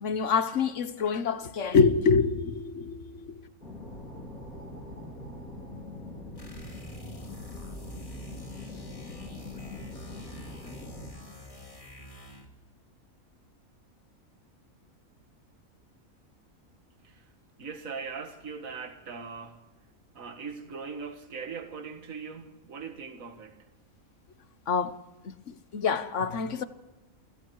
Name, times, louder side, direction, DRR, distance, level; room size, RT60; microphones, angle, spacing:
voice 1, 0.0-3.5 24.7-25.0 25.2-26.6, left 5 dB, 55° left, 1.4 m, -26 dB
sound 1, 3.6-11.1, left 2 dB, 75° left, 4.4 m, -42 dB
sound 2, 6.4-12.6, left 1 dB, 20° left, 2.6 m, -47 dB
voice 2, 17.6-19.6 20.1-23.6, right 5 dB, 65° right, 2.1 m, -40 dB
30.0 x 25.0 x 4.8 m
omnidirectional pair, 1.5 m